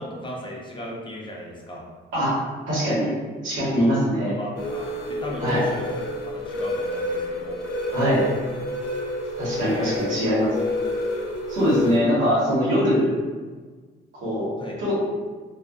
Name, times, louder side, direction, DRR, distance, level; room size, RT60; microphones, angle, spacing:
voice 1, 0.0-1.9 3.7-7.6 9.7-10.4 14.6-14.8, equal, 25° left, -3 dB, 0.5 m, -36 dB
voice 2, 2.7-3.1 3.4-4.4 5.4-5.6 7.9-8.3 9.4-10.5 11.5-13.1 14.2-14.5 14.8-15.0, equal, 80° right, -7 dB, 1.2 m, -22 dB
sound 1, 4.6-12.0, left 1 dB, 80° left, 0.5 m, -29 dB
2.5 x 2.3 x 2.3 m, 1.4 s
cardioid pair, 90°, 20 cm